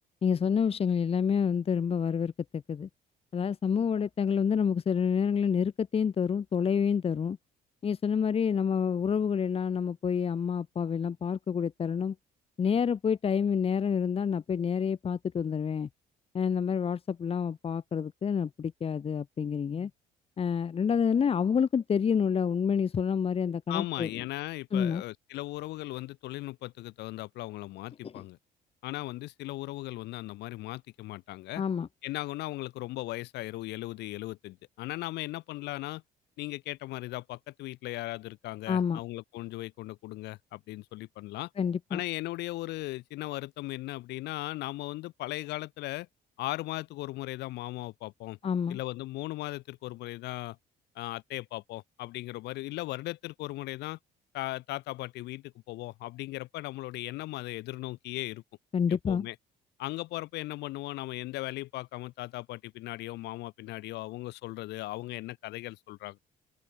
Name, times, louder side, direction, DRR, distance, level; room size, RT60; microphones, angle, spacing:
voice 1, 0.2-2.9 3.3-7.4 7.8-12.1 12.6-15.9 16.3-19.9 20.4-24.1 24.7-25.0 28.0-28.1 31.6-31.9 38.7-39.0 41.6-42.0 48.4-48.8 58.7-59.3, left 7 dB, 35° left, 1.4 m, -28 dB
voice 2, 23.7-28.4 28.8-31.6 32.0-36.0 36.4-41.5 41.9-46.1 46.4-48.4 48.7-50.6 51.0-54.0 54.3-58.4 58.9-59.4 59.8-66.2, left 18 dB, 85° left, 3.9 m, -37 dB
cardioid pair, 110°, 17 cm